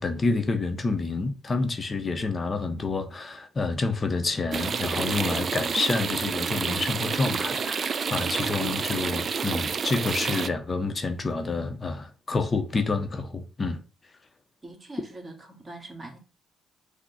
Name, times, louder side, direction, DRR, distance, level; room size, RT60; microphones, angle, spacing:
voice 1, 0.0-13.8, left 3 dB, 35° left, 0.6 m, -28 dB
sound 1, 4.5-10.5, right 6 dB, 45° right, 0.3 m, -29 dB
voice 2, 14.6-16.2, right 2 dB, 20° right, 1.4 m, -42 dB
5.9 x 2.1 x 4.0 m
cardioid pair, 90°, 0 cm